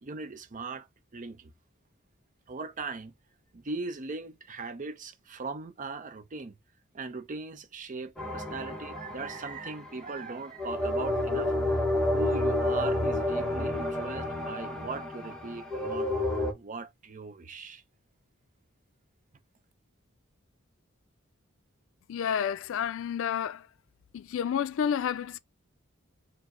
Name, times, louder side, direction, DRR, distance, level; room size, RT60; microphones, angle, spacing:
voice 1, 0.0-0.9 1.1-1.5 2.5-3.1 3.5-6.5 6.9-11.5 12.1-16.1 16.5-17.8, right 3 dB, 40° right, 0.6 m, -39 dB
sound 1, 8.2-9.9 10.6-16.5, left 1 dB, 5° left, 0.9 m, -30 dB
voice 2, 22.1-23.6 24.1-25.4, left 8 dB, 70° left, 0.3 m, -30 dB
5.0 x 2.0 x 3.6 m
head